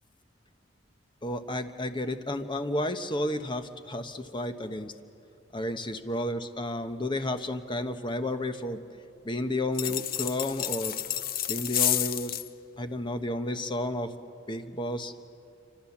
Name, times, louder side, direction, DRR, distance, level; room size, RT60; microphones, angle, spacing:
voice 1, 1.2-4.9 5.5-8.8 9.2-10.9 11.5-12.4 12.8-14.1 14.5-15.1, left 1 dB, 25° left, 8 dB, 1.1 m, -32 dB
sound 1, 9.7-12.5, left 11 dB, 50° left, 0.7 m, -30 dB
27.5 x 25.5 x 7.3 m, 2.7 s
head